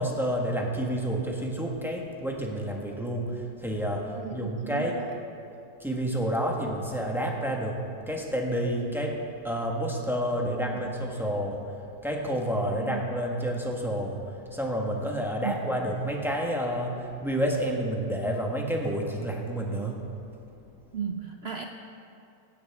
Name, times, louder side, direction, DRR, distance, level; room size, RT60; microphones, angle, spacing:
voice 1, 0.0-5.0 5.8-7.8 8.1-20.1, equal, ahead, -1 dB, 1.2 m, -29 dB
voice 2, 4.1-5.1 10.6-10.8 12.8-13.0 15.4-15.8 20.9-21.7, right 7 dB, 85° right, 3 dB, 0.5 m, -35 dB
23.5 x 9.4 x 3.6 m, 2.6 s
omnidirectional pair, 1.9 m